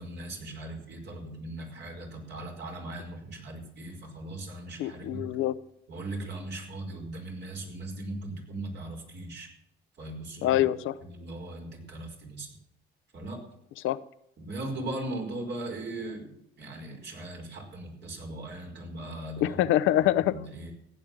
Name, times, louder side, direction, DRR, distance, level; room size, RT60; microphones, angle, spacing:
voice 1, 0.0-5.3 5.9-9.5 10.0-10.6 11.0-12.5 13.1-13.4 14.4-19.6 20.3-20.7, right 2 dB, 60° right, 2 dB, 5.0 m, -39 dB
voice 2, 4.8-5.5 10.4-10.9 13.8-14.0 19.4-20.3, left 13 dB, 90° left, 14 dB, 0.7 m, -25 dB
15.5 x 9.4 x 7.5 m, 0.76 s
cardioid pair, 90°, 20 cm